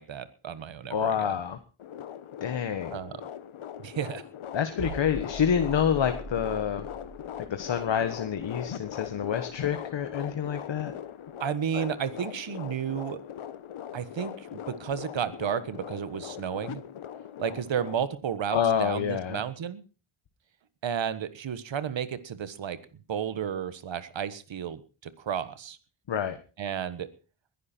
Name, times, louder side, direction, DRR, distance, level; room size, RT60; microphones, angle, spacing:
voice 1, 0.0-1.3 2.9-3.2 3.8-4.2 11.4-13.2 13.9-16.8 17.4-19.8 20.8-22.8 23.1-25.8 26.6-27.1, right 8 dB, 65° right, 13 dB, 1.5 m, -32 dB
voice 2, 0.9-1.6 2.4-3.0 4.5-6.9 7.5-10.9 11.7-11.9 18.5-19.4 26.1-26.4, left 8 dB, 60° left, 8 dB, 1.4 m, -28 dB
sound 1, 1.8-18.0, left 9 dB, 80° left, 1.3 m, -40 dB
Big boom, 4.8-10.5 10.7-11.0, right 2 dB, 85° right, 4.2 m, -43 dB
21.0 x 11.0 x 4.5 m, 0.35 s
wide cardioid pair, 100°, 48 cm